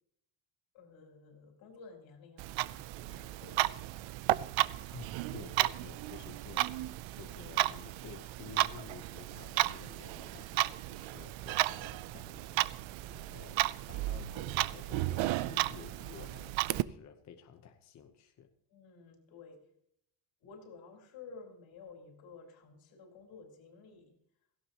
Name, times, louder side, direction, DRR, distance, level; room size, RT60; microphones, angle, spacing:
voice 1, 0.7-2.8 3.1-4.0 12.9-13.3 18.7-19.7 20.4-24.2, left 4 dB, 85° left, 2 dB, 4.5 m, -53 dB
Clock, 2.4-16.8, right 17 dB, 85° right, 0.6 m, -34 dB
voice 2, 4.9-13.6 13.8-18.5, left 8 dB, 40° left, 6 dB, 1.0 m, -52 dB
17.0 x 16.0 x 3.0 m, 0.71 s
cardioid pair, 180°, 44 cm